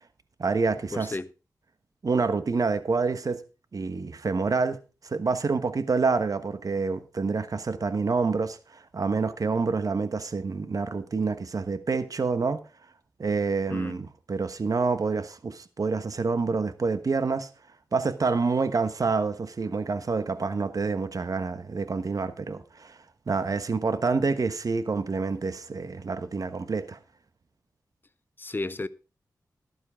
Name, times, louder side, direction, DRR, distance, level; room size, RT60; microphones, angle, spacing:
voice 1, 0.4-1.2 2.0-3.4 3.7-4.8 5.0-12.6 13.2-17.5 17.9-23.0 23.3-27.0, right 4 dB, 55° right, 1.2 m, -27 dB
voice 2, 0.9-1.3 13.7-14.0 28.4-28.9, left 2 dB, 30° left, 0.7 m, -33 dB
12.5 x 11.0 x 3.5 m
cardioid pair, 55°, 7 cm